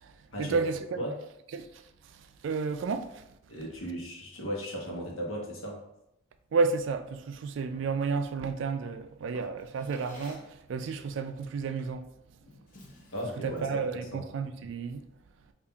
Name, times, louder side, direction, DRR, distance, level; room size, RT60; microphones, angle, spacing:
voice 1, 0.0-1.0 1.5-1.7 2.0-3.2 6.5-12.1 13.4-15.0, right 4 dB, 65° right, 0.3 m, -32 dB
voice 2, 3.5-5.8 7.7-7.8 13.1-14.2, equal, 80° left, 1.0 m, -36 dB
Drawer open or close, 9.3-10.6 11.8-12.0 12.4-13.9, left 2 dB, 40° left, 0.7 m, -50 dB
5.3 x 2.5 x 2.3 m
head